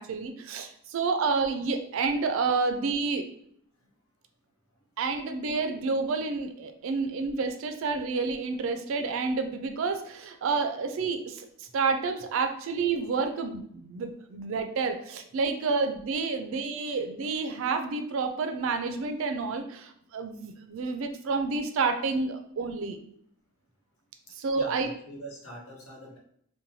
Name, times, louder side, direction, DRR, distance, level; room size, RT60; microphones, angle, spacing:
voice 1, 0.0-3.3 5.0-23.0 24.4-24.9, right 4 dB, 65° right, 7 dB, 0.3 m, -29 dB
voice 2, 24.3-26.2, right 1 dB, 80° left, -2 dB, 0.8 m, -44 dB
3.0 x 2.1 x 2.7 m, 0.67 s
head